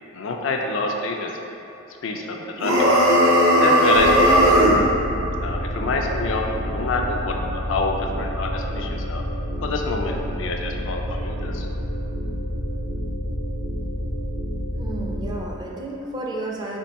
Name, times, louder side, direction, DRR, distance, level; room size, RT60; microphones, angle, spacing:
voice 1, 0.1-1.3 2.0-2.9 3.6-4.5 5.4-9.2 9.6-11.7, left 3 dB, 65° left, 2 dB, 0.4 m, -27 dB
sound 1, 2.6-4.8, equal, 75° right, 0.7 m, -16 dB
sound 2, 3.9-15.4, equal, 85° left, 0.7 m, -29 dB
voice 2, 14.8-16.8, right 1 dB, 20° right, -2 dB, 0.4 m, -32 dB
4.5 x 2.6 x 4.0 m, 3.0 s
head